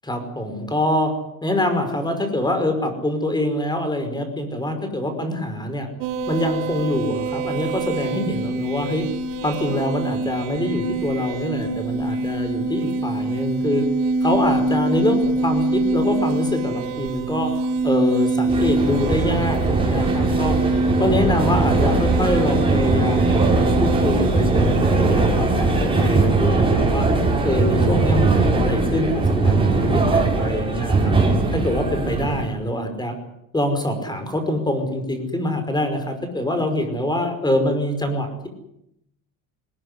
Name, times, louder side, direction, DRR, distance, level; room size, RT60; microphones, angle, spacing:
voice 1, 0.0-1.1 1.4-5.9 6.3-9.1 9.4-13.8 14.2-17.5 17.8-20.6 21.0-27.1 27.4-31.1 31.5-33.1 33.5-38.5, left 1 dB, 10° left, 8 dB, 5.4 m, -25 dB
sound 1, 6.0-25.0, right 2 dB, 80° right, 4.3 m, -25 dB
sound 2, 18.5-32.5, right 3 dB, 10° right, 6.0 m, -20 dB
21.0 x 18.5 x 9.9 m, 0.80 s
cardioid pair, 130°, 42 cm